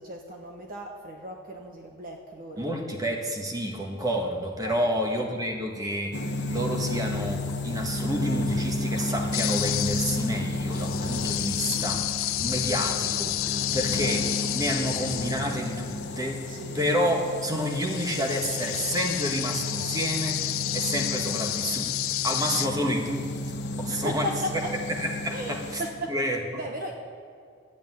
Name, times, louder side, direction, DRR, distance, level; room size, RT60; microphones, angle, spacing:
voice 1, 0.0-2.7 4.6-4.9 11.6-11.8 13.5-13.9 16.5-16.8 21.2-21.5 23.9-24.7 25.3-26.2 26.5-26.9, equal, 45° right, 2 dB, 1.1 m, -36 dB
voice 2, 2.6-6.2 6.5-13.4 13.7-14.2 14.5-16.5 16.7-20.4 20.7-21.9 22.2-23.3 23.8-24.2 25.0-25.8 26.1-26.4, equal, 20° right, 2 dB, 1.6 m, -29 dB
sound 1, 6.1-25.9, left 2 dB, 55° left, 1.3 m, -33 dB
sound 2, 7.1-15.2, equal, 75° right, 4.3 m, -42 dB
sound 3, 9.3-16.1 17.1-17.2 17.5-22.7, left 14 dB, 70° left, 0.5 m, -31 dB
12.5 x 8.5 x 9.8 m, 2.2 s
head